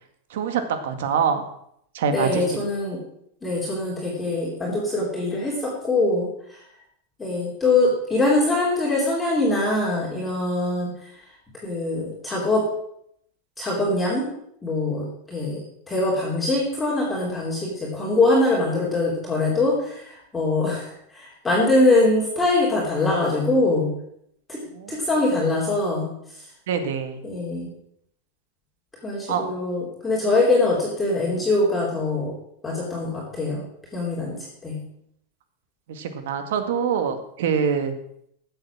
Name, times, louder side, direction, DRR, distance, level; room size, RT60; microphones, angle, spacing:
voice 1, 0.3-1.4 1.9-2.6 24.7-25.0 26.7-27.2 29.3-29.5 35.9-37.9, right 7 dB, 75° right, 8 dB, 2.0 m, -25 dB
voice 2, 2.1-3.0 3.4-6.6 7.2-11.1 11.6-12.6 13.6-14.2 14.6-23.9 24.5-24.6 24.9-26.1 27.2-27.7 29.0-32.3 32.6-33.6 33.9-34.4 34.6-34.8, left 2 dB, 5° left, -5 dB, 3.1 m, -23 dB
14.5 x 8.0 x 6.2 m, 0.72 s
supercardioid pair, 165°, 0 cm